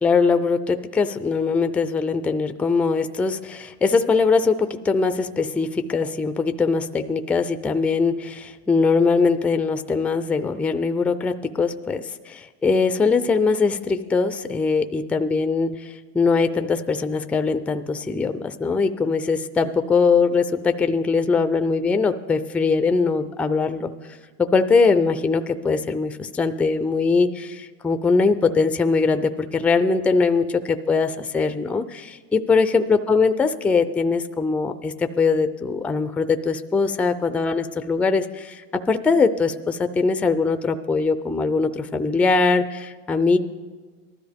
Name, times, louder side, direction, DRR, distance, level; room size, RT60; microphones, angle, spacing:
voice 1, 0.0-23.9 24.4-43.4, left 4 dB, 5° left, 10 dB, 0.3 m, -21 dB
19.0 x 13.0 x 3.5 m, 1.4 s
supercardioid pair, 125°, 36 cm